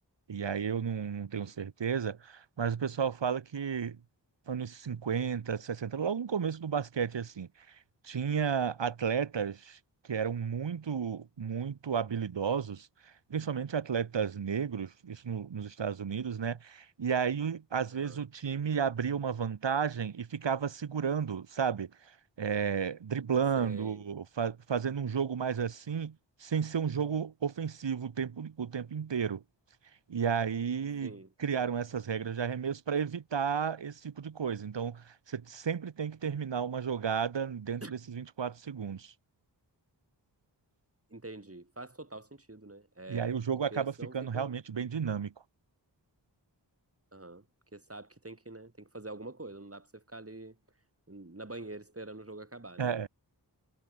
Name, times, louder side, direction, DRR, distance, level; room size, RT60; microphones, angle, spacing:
voice 1, 0.3-4.0 4.5-7.5 8.0-9.8 10.1-12.9 13.3-21.9 22.4-26.1 26.4-29.4 30.1-31.1 31.4-39.1 43.1-45.3 52.8-53.1, right 7 dB, 80° right, 1.1 m, -32 dB
voice 2, 23.6-24.1 31.0-31.3 37.8-37.9 41.1-43.4 43.7-44.6 47.1-47.5 47.7-50.6 51.1-53.1, right 2 dB, 30° right, 4.4 m, -46 dB
wide cardioid pair, 45°, 43 cm